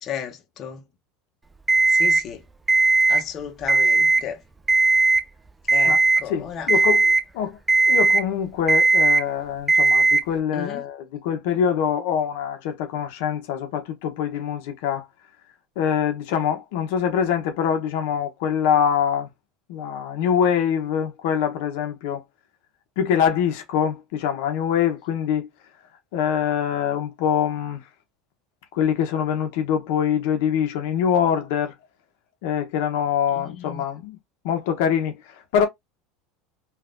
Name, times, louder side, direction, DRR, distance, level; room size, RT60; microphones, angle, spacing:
voice 1, 0.0-0.8 1.9-2.4 2.8-4.4 5.7-6.7 10.5-10.8 33.3-33.8, left 7 dB, 40° left, 0.9 m, -34 dB
Alarm, 1.7-2.2 2.7-3.2 3.6-4.2 4.7-5.2 5.7-6.2 6.7-7.2 7.7-8.2 8.7-9.2 9.7-10.2, right 3 dB, 15° right, 0.4 m, -17 dB
voice 2, 6.3-15.1 15.8-19.3 19.7-22.2 23.0-25.5 26.1-27.9 28.7-31.7 32.4-34.2 34.4-35.7, left 8 dB, 75° left, 0.9 m, -24 dB
3.5 x 2.5 x 2.5 m
supercardioid pair, 130°, 0 cm